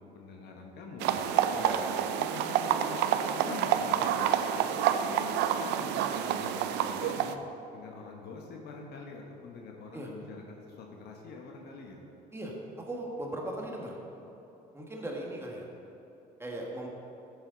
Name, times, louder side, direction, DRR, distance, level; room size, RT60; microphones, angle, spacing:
voice 1, 0.0-1.5 2.2-7.4 7.7-12.1, left 4 dB, 70° left, 1 dB, 1.2 m, -45 dB
sound 1, 1.0-7.3, right 9 dB, 85° right, 0.5 m, -28 dB
voice 2, 1.5-2.0 9.9-10.1 12.3-14.0 14.7-15.7 16.4-16.9, right 1 dB, 15° right, -1 dB, 1.7 m, -38 dB
12.0 x 8.0 x 4.0 m, 3.0 s
cardioid pair, 110°, 17 cm